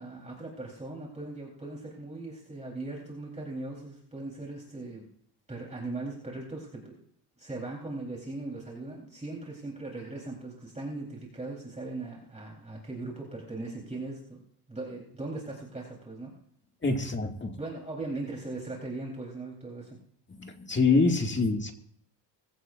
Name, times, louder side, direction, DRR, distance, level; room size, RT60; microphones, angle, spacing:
voice 1, 0.0-5.0 5.5-7.0 7.4-14.4 14.7-16.3 17.5-20.0, right 2 dB, 15° right, -3 dB, 4.0 m, -39 dB
voice 2, 16.8-17.6 20.3-21.7, left 3 dB, 25° left, 3 dB, 2.2 m, -26 dB
21.5 x 16.0 x 2.6 m, 0.64 s
cardioid pair, 100°, 42 cm